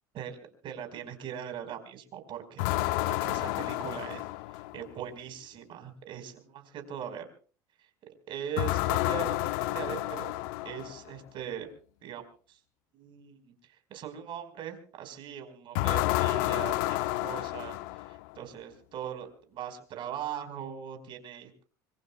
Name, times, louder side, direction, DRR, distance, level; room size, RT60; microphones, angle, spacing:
voice 1, 0.6-4.3 4.7-7.3 8.3-10.3 10.6-11.7 12.0-12.6 12.9-17.8 18.1-21.6, right 9 dB, 55° right, 6 dB, 4.8 m, -40 dB
sound 1, 2.6-4.9 8.6-11.1 15.7-18.4, left 18 dB, 75° left, 0.7 m, -30 dB
25.0 x 24.0 x 2.3 m, 0.40 s
supercardioid pair, 90°, 10 cm